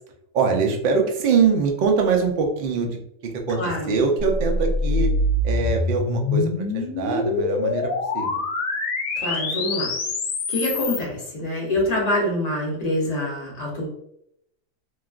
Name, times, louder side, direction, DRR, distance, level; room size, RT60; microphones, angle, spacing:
voice 1, 0.3-5.1 5.4-8.4, right 5 dB, 75° right, 2 dB, 0.4 m, -23 dB
voice 2, 3.5-3.9 9.2-9.9 10.5-13.9, left 1 dB, 35° left, -2 dB, 0.8 m, -25 dB
sound 1, 4.2-11.0, left 2 dB, 90° left, 1.0 m, -25 dB
3.1 x 2.3 x 2.3 m, 0.74 s
omnidirectional pair, 1.4 m